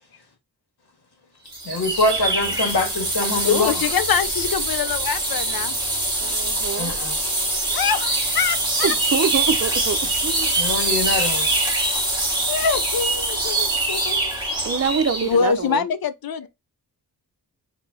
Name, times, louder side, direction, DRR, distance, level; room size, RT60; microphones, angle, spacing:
sound 1, 1.5-15.4, right 2 dB, 10° right, 1.8 m, -24 dB
voice 1, 1.6-3.7 6.8-7.2 10.5-11.5 12.0-12.1, left 2 dB, 90° left, 1.7 m, -24 dB
voice 2, 3.4-5.7 7.7-8.9 12.5-14.3 14.7-14.9 15.2-16.5, left 7 dB, 65° left, 0.7 m, -24 dB
voice 3, 6.2-6.9 8.8-10.5 14.6-15.8, right 6 dB, 40° right, 0.7 m, -25 dB
5.8 x 3.0 x 2.8 m
wide cardioid pair, 95°, 39 cm